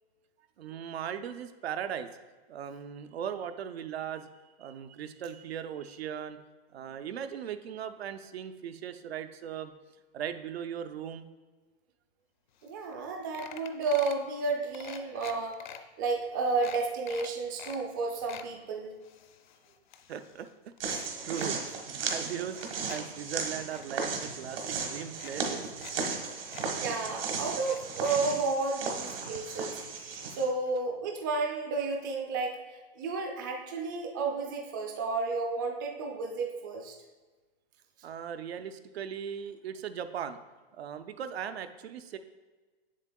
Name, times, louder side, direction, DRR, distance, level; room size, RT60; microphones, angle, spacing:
voice 1, 0.6-2.1 2.5-4.3 4.6-6.4 6.7-9.7 10.1-11.3 20.1-20.5 20.9-25.6 38.0-40.4 40.7-42.2, right 8 dB, 85° right, 9 dB, 0.6 m, -38 dB
sound 1, 12.6-12.7 12.9-13.1 13.3-14.3 14.7-15.8 16.2-16.3 16.6-17.8 18.1-18.5 19.0-20.5 20.8-21.5 22.0-23.0 23.4-23.9 24.7-24.8 25.1-25.9 26.2-26.3 26.5-26.7 27.5-28.5 29.3-29.4 29.7-29.8, left 9 dB, 50° left, 0.5 m, -46 dB
voice 2, 12.6-15.7 16.0-19.0 26.4-29.8 30.4-37.0, right 3 dB, 20° right, 2 dB, 0.4 m, -32 dB
sound 2, 20.8-30.5, right 5 dB, 65° right, 1.3 m, -35 dB
7.4 x 7.3 x 2.2 m, 1.3 s
hypercardioid pair, 165°, 31 cm